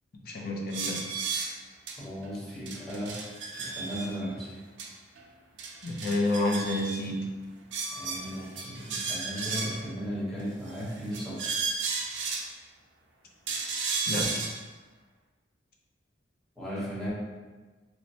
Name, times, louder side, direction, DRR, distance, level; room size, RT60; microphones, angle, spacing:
voice 1, 0.2-1.1 5.8-7.3 14.1-14.5, left 2 dB, 55° left, 0 dB, 0.4 m, -29 dB
sound 1, 0.7-1.5 1.9-2.0 2.2-2.3 2.7-4.1 4.8-4.9 5.2-5.3 5.6-7.0 7.7-9.9 10.7-12.5 13.5-14.5, right 4 dB, 75° right, 0.4 m, -33 dB
voice 2, 2.0-3.2 3.6-4.6 7.9-11.5 16.6-17.1, equal, ahead, -10 dB, 0.9 m, -36 dB
3.0 x 2.1 x 2.6 m, 1.3 s
head